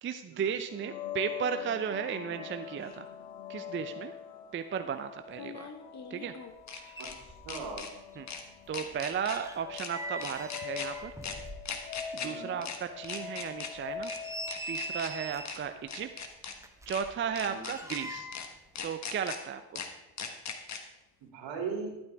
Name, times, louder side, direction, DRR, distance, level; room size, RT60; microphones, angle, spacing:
voice 1, 0.0-3.1 3.5-4.1 4.5-5.7 6.1-6.3 6.8-6.9 8.2-8.3 8.7-11.1 12.2-14.1 14.7-16.1 16.9-18.3 18.8-19.8, right 7 dB, 25° right, 9 dB, 0.5 m, -35 dB
sound 1, 0.7-16.3, left 8 dB, 85° left, 1.1 m, -44 dB
sound 2, 2.8-2.9 5.3-7.1 7.5-7.9 8.3-8.4 8.7-9.4 9.7-9.9 10.2-10.9 11.2-11.3 11.6-12.3 12.6-12.8 13.0-13.7 14.0-14.2 14.5-15.1 15.4-15.6 15.9-16.5 16.9-17.0 17.4-18.0 18.3-18.5 18.8-19.4 19.7-19.9 20.2-20.8, left 6 dB, 35° left, 1.4 m, -39 dB
sound 3, 6.6-6.7 6.9-7.9 8.1-12.1 12.5-12.6 13.1-13.2 13.8-15.7 16.6-18.6 18.8-19.0, right 1 dB, 5° right, 0.9 m, -43 dB
voice 2, 7.0-7.8 12.2-12.6 17.3-17.7 21.2-21.9, right 5 dB, 60° right, 2 dB, 2.9 m, -39 dB
11.5 x 8.8 x 3.5 m, 0.98 s
supercardioid pair, 85°, 49 cm